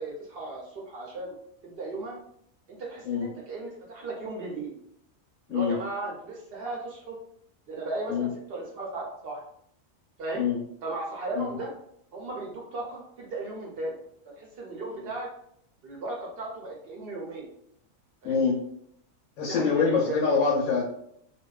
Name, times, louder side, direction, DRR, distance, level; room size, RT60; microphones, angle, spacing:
voice 1, 0.0-1.3 1.6-2.2 2.7-4.7 5.5-7.2 7.7-9.4 10.2-10.5 10.8-11.7 12.1-14.0 14.3-15.3 15.8-17.5 18.2-18.5 19.4-20.2, right 2 dB, 65° right, -1 dB, 0.6 m, -36 dB
voice 2, 18.2-18.6 19.4-20.8, left 5 dB, 80° left, -4 dB, 0.9 m, -25 dB
2.5 x 2.2 x 2.2 m, 0.71 s
omnidirectional pair, 1.4 m